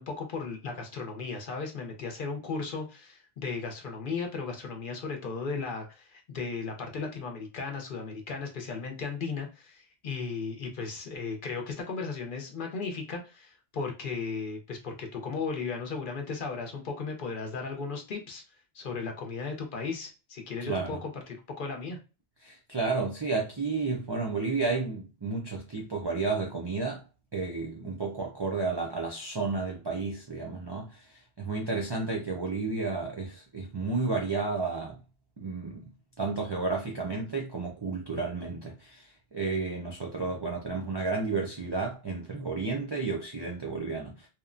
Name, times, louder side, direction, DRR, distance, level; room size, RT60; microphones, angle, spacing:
voice 1, 0.0-18.4 18.7-22.0, left 4 dB, 60° left, 0.7 m, -36 dB
voice 2, 20.7-21.0 22.4-27.0 27.3-31.0 31.4-35.0 35.4-35.9 36.2-44.3, right 4 dB, 45° right, 0.3 m, -32 dB
2.9 x 2.0 x 2.4 m
omnidirectional pair, 1.1 m